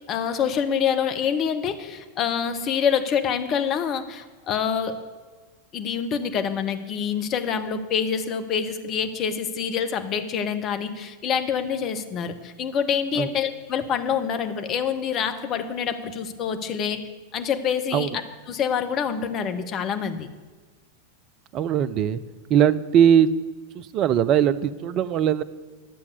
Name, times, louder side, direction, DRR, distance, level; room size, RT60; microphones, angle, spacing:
voice 1, 0.1-5.0 5.7-17.0 17.3-18.1 18.5-20.3, left 7 dB, 35° left, 8 dB, 1.0 m, -26 dB
voice 2, 21.5-22.2 22.5-23.3 23.8-25.4, right 9 dB, 35° right, 16 dB, 0.5 m, -20 dB
11.5 x 7.1 x 8.1 m, 1.4 s
figure-of-eight pair, 90°, 0 cm